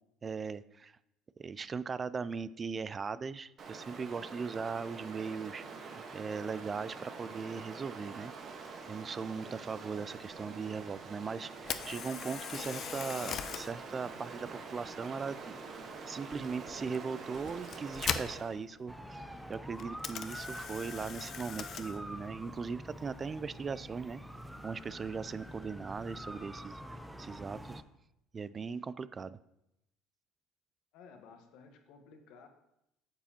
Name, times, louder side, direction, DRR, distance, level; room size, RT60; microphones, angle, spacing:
voice 1, 0.2-0.9 1.4-5.6 5.9-8.3 8.9-15.6 16.1-19.2 19.5-24.2 24.6-26.8 27.2-27.8 28.3-29.4, right 5 dB, 35° right, 16 dB, 0.3 m, -39 dB
Stream, 3.6-18.6, right 4 dB, 50° right, 1.3 m, -46 dB
Camera, 11.6-25.6, left 8 dB, 50° left, 0.6 m, -43 dB
sound 1, 18.9-27.8, equal, 5° right, 0.7 m, -46 dB
voice 2, 30.9-32.5, left 5 dB, 70° left, 5 dB, 1.2 m, -55 dB
8.6 x 7.1 x 2.9 m, 0.85 s
hypercardioid pair, 70°, 0 cm